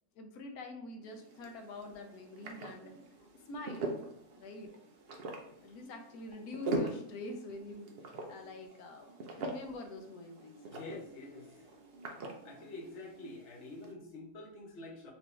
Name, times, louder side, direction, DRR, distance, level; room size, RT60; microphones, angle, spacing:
voice 1, 0.2-3.0 3.5-3.9 4.4-4.7 5.6-9.1 9.4-10.6, left 2 dB, 70° left, 4 dB, 1.0 m, -45 dB
sound 1, 1.0-13.9, right 2 dB, 70° right, 0.5 m, -43 dB
voice 2, 10.7-11.7 12.2-15.1, left 2 dB, 50° left, 0 dB, 1.0 m, -47 dB
4.5 x 2.6 x 3.1 m, 0.74 s
omnidirectional pair, 1.8 m